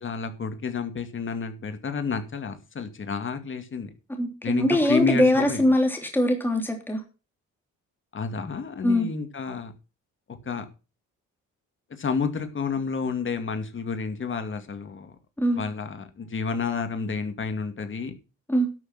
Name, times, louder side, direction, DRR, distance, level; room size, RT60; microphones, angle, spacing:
voice 1, 0.0-3.9 4.4-5.6 8.1-9.7 10.4-10.6 12.0-15.1 15.5-18.1, left 5 dB, 40° left, 8 dB, 2.4 m, -30 dB
voice 2, 4.1-7.0 8.8-9.1 15.4-15.6 18.5-18.7, left 1 dB, 5° left, 3 dB, 3.1 m, -22 dB
12.0 x 6.7 x 6.1 m, 0.32 s
cardioid pair, 90°, 30 cm